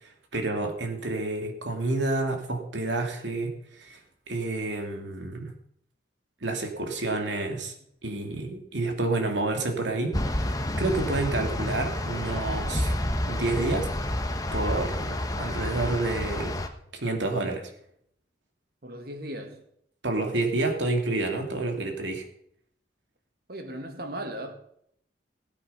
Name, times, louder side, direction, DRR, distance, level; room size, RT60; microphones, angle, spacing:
voice 1, 0.0-4.0 4.3-5.5 6.4-7.7 8.0-12.9 13.3-13.9 14.5-16.5 16.9-17.7 20.0-22.2, right 2 dB, 80° right, 2.7 m, -29 dB
sound 1, 10.1-16.7, left 1 dB, 20° left, 1.1 m, -29 dB
voice 2, 18.8-19.7 23.5-24.6, right 1 dB, 55° right, 1.9 m, -37 dB
17.0 x 8.4 x 5.5 m
head